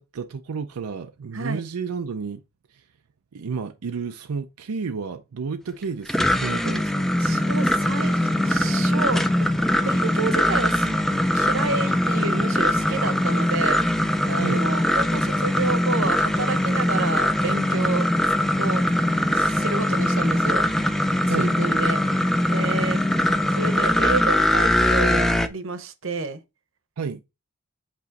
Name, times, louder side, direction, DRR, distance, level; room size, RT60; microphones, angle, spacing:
voice 1, 0.0-2.4 2.7-2.9 3.3-7.1 14.3-14.7 21.3-21.6 27.0-27.2, right 5 dB, 85° right, 0.5 m, -31 dB
sound 1, 5.8-25.5, left 1 dB, ahead, 0.4 m, -21 dB
voice 2, 7.2-9.2 9.8-11.0 11.3-13.8 14.3-18.1 18.6-18.8 19.3-20.7 21.3-22.0 22.5-23.0 23.5-26.4, right 3 dB, 60° right, 0.9 m, -29 dB
8.3 x 3.0 x 5.1 m
head